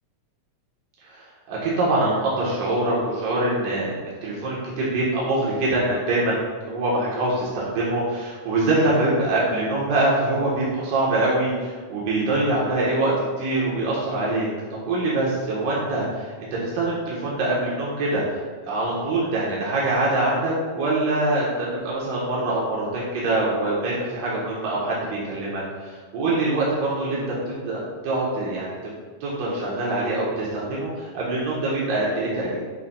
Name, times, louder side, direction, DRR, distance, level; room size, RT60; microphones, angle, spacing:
voice 1, 1.1-6.4 6.6-13.1 13.4-14.5 14.9-18.2 18.7-28.7 29.2-32.6, right 2 dB, 85° right, -6 dB, 3.0 m, -24 dB
11.5 x 5.5 x 2.2 m, 1.5 s
omnidirectional pair, 3.8 m